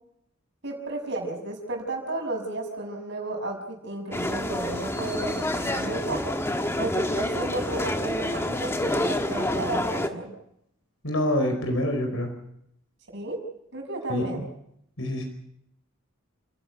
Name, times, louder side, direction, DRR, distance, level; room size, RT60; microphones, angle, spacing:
voice 1, 0.6-6.2 6.8-10.3 13.1-13.4 13.7-14.4, right 2 dB, 55° right, 2 dB, 6.4 m, -33 dB
sound 1, 4.1-10.1, left 1 dB, 10° left, 1.3 m, -28 dB
voice 2, 11.0-12.3 14.1-14.5 15.0-15.2, left 1 dB, 70° left, 4 dB, 4.7 m, -26 dB
30.0 x 11.5 x 9.4 m, 0.76 s
head